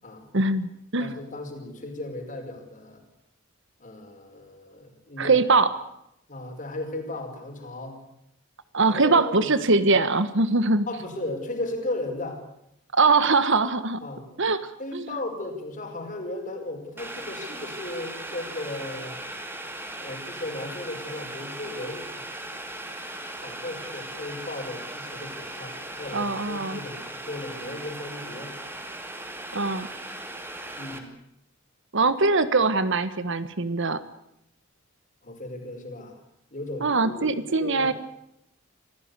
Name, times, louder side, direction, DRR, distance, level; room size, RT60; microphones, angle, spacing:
voice 1, 0.3-1.1 5.2-5.7 8.7-10.9 12.9-14.0 14.4-14.6 14.9-15.1 26.1-26.8 29.5-29.9 31.9-34.0 36.8-37.9, right 3 dB, 65° right, 12 dB, 1.4 m, -22 dB
voice 2, 1.0-3.0 3.8-5.4 6.3-8.0 8.9-9.5 10.9-12.4 14.0-14.3 14.8-19.2 20.0-22.3 23.3-28.6 30.8-31.1 35.2-36.2 36.5-37.9, left 2 dB, 40° left, 4 dB, 5.4 m, -36 dB
Boiling, 17.0-31.0, right 1 dB, 10° right, 2.7 m, -38 dB
26.5 x 16.0 x 8.3 m, 0.80 s
head